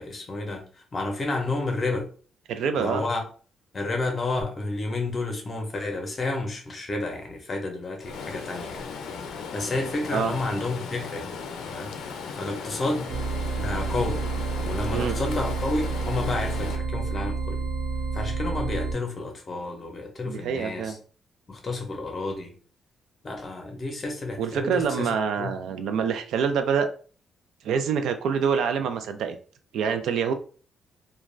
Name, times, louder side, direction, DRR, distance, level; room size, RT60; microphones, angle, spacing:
voice 1, 0.0-2.1 2.8-3.2 3.7-8.9 9.5-11.3 11.7-13.1 13.6-14.2 14.6-17.6 18.1-21.0 21.5-22.5 23.2-25.6, left 2 dB, 25° left, 3 dB, 0.6 m, -30 dB
voice 2, 2.5-3.0 10.1-10.3 14.9-15.2 20.3-21.0 24.4-26.9 27.6-29.4 29.7-30.3, right 6 dB, 80° right, 8 dB, 0.4 m, -26 dB
Stream, 8.0-16.8, left 5 dB, 85° left, 0.4 m, -37 dB
sound 1, 13.1-18.9, right 4 dB, 55° right, 0.8 m, -29 dB
2.4 x 2.1 x 3.1 m, 0.40 s
cardioid pair, 170°, 0 cm